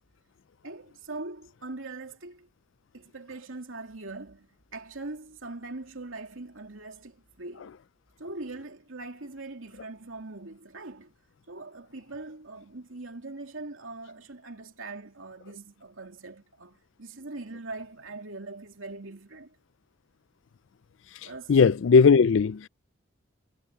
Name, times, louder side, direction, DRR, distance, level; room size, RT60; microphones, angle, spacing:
voice 1, 0.6-2.5 2.9-7.7 8.2-11.1 11.5-19.6 21.2-21.5, right 2 dB, 85° right, 2.8 m, -41 dB
voice 2, 21.5-22.7, left 5 dB, 70° left, 0.4 m, -18 dB
head